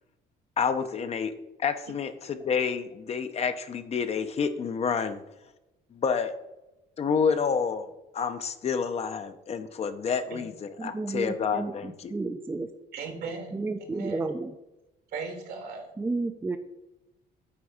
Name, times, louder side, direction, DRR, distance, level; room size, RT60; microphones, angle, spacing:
voice 1, 0.6-1.3 1.6-5.2 5.9-6.3 7.0-7.9 8.1-12.1, left 6 dB, 40° left, 9 dB, 0.6 m, -29 dB
voice 2, 10.8-11.7 12.1-12.7 13.5-14.5 16.0-16.6, right 3 dB, 15° right, 8 dB, 0.4 m, -31 dB
voice 3, 12.9-14.2 15.1-15.9, right 4 dB, 75° right, 4 dB, 1.7 m, -37 dB
8.7 x 3.5 x 4.9 m, 0.98 s
cardioid pair, 110°, 17 cm